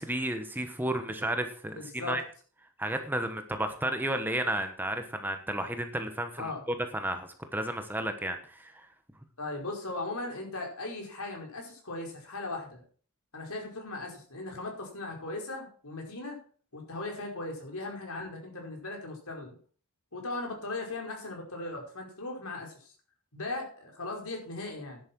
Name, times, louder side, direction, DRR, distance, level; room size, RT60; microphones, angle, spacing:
voice 1, 0.0-2.2 2.8-8.9, right 1 dB, 10° right, 7 dB, 1.2 m, -32 dB
voice 2, 1.7-2.2 6.4-6.6 9.4-12.8 13.3-16.4 16.7-19.5 20.1-22.9 23.3-25.0, left 2 dB, 75° left, 1 dB, 5.1 m, -38 dB
11.0 x 8.6 x 6.2 m, 0.43 s
head